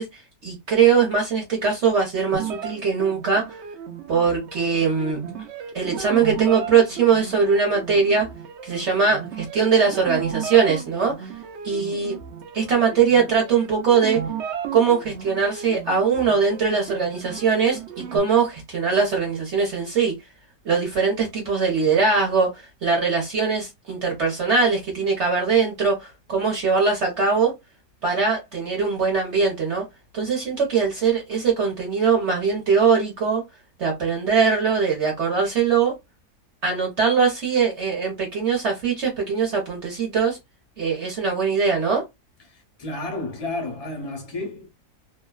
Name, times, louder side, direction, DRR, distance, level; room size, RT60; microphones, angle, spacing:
voice 1, 0.0-3.6 4.1-5.2 5.7-8.3 8.6-11.3 11.6-12.1 12.5-14.2 14.7-20.1 20.6-27.5 28.0-29.8 30.1-33.4 33.8-35.9 36.6-40.4 40.8-42.0, right 5 dB, 55° right, 0.9 m, -21 dB
sound 1, 2.3-18.2, right 8 dB, 90° right, 0.6 m, -35 dB
voice 2, 42.5-44.7, left 2 dB, 45° left, 0.4 m, -31 dB
2.7 x 2.2 x 2.2 m
omnidirectional pair, 1.7 m